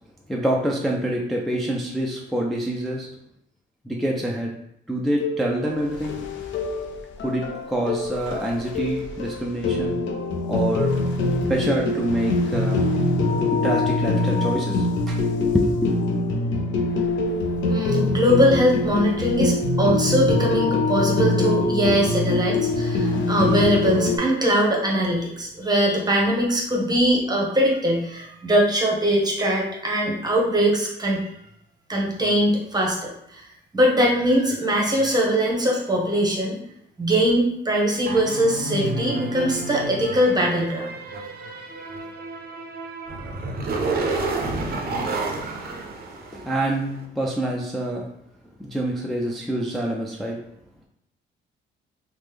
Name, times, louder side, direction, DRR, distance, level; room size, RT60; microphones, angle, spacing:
voice 1, 0.3-3.1 3.8-4.5 4.9-6.2 7.2-10.1 10.5-10.9 11.5-12.8 13.5-15.2 15.5-15.9 46.3-48.1 48.6-50.4, right 1 dB, ahead, -2 dB, 0.3 m, -26 dB
sound 1, 5.2-24.2, left 2 dB, 75° left, 0.5 m, -24 dB
voice 2, 17.7-31.3 31.9-33.5 33.7-36.6 37.0-40.9, equal, 20° right, -1 dB, 0.9 m, -21 dB
sound 2, 38.1-46.8, right 3 dB, 50° right, 0.6 m, -30 dB
3.1 x 2.1 x 3.4 m, 0.78 s
cardioid pair, 90°, 20 cm